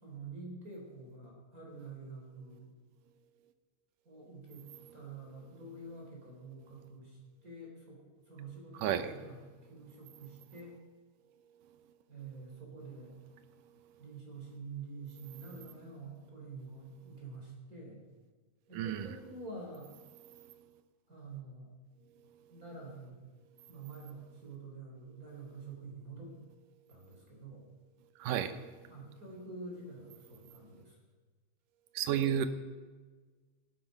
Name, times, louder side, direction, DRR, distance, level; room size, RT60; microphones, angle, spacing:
voice 1, 0.0-2.7 4.0-10.8 12.1-13.1 14.0-18.0 18.7-19.9 21.1-21.7 22.5-23.3 23.7-26.4 26.9-27.7 28.9-31.0, right 3 dB, 25° right, -1 dB, 4.2 m, -47 dB
voice 2, 8.8-9.1 18.8-19.1 28.2-28.5 32.0-32.5, right 9 dB, 85° right, 10 dB, 2.5 m, -31 dB
17.5 x 12.0 x 5.4 m, 1.4 s
omnidirectional pair, 3.7 m